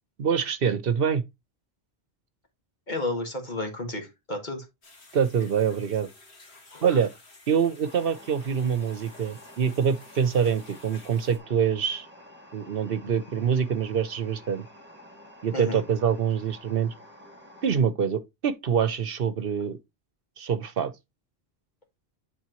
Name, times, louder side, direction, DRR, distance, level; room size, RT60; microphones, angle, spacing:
voice 1, 0.2-1.2 5.1-6.1 6.8-7.1 7.5-12.1 12.5-14.7 15.4-16.9 17.6-19.8 20.4-20.9, right 7 dB, 65° right, 0.9 m, -25 dB
voice 2, 2.9-4.7 6.7-7.0 15.5-15.8, left 2 dB, 45° left, 2.0 m, -32 dB
sound 1, 4.8-11.4, left 3 dB, 85° left, 2.2 m, -52 dB
sound 2, 7.8-17.7, equal, 10° right, 1.8 m, -50 dB
10.0 x 4.3 x 3.0 m
omnidirectional pair, 1.1 m